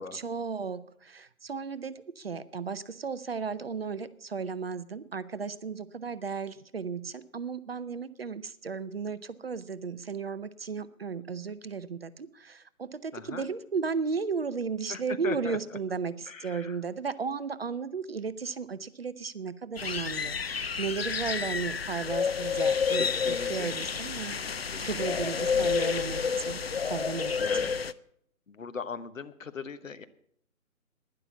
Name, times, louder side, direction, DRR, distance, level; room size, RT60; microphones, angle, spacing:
voice 1, 0.0-23.1 23.5-24.4 24.8-27.7, right 5 dB, 45° right, 15 dB, 0.6 m, -35 dB
voice 2, 13.1-13.5 14.9-15.8 16.3-16.8 22.9-23.8 24.7-25.9 27.3-27.7 28.5-30.0, left 5 dB, 65° left, 11 dB, 1.1 m, -40 dB
sound 1, 19.8-27.9, left 6 dB, 45° left, 0.4 m, -30 dB
11.5 x 10.5 x 7.0 m, 0.68 s
figure-of-eight pair, 145°, 43 cm